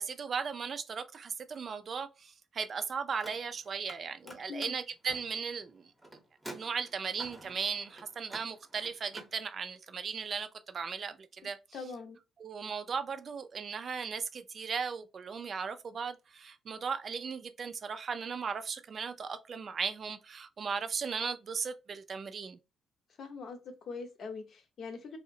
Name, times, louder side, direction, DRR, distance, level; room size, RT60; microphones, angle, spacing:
voice 1, 0.0-5.8 6.5-11.6 12.4-22.6, right 5 dB, 50° right, 0.3 m, -37 dB
Car, 3.1-4.0 4.2-9.3, right 1 dB, 10° right, 0.7 m, -50 dB
voice 2, 4.2-4.8 11.4-12.2 23.2-25.2, left 4 dB, 60° left, 0.6 m, -43 dB
2.7 x 2.0 x 2.6 m
cardioid pair, 90°, 0 cm